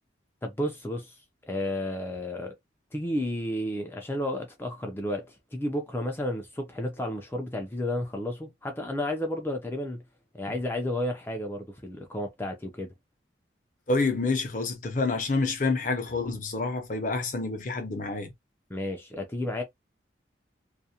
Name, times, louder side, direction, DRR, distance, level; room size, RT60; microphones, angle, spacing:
voice 1, 0.4-1.2 1.5-2.5 2.9-10.0 10.3-12.9 18.7-19.6, left 1 dB, 10° left, 0.4 m, -32 dB
voice 2, 13.9-18.3, left 3 dB, 45° left, 0.7 m, -28 dB
2.4 x 2.1 x 2.7 m
head